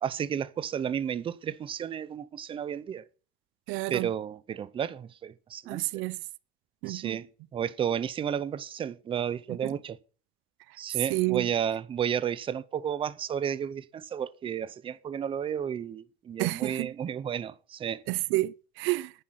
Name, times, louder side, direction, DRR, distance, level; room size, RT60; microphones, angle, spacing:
voice 1, 0.0-3.0 3.9-6.0 6.9-7.3 7.5-10.0 10.8-18.0, right 8 dB, 25° right, 0.7 m, -32 dB
voice 2, 3.7-4.1 5.7-6.2 6.8-7.2 9.6-9.7 11.1-11.5 16.4-16.9 18.1-19.1, right 20 dB, 85° right, 0.6 m, -29 dB
10.5 x 10.0 x 9.2 m
cardioid pair, 170°, 20 cm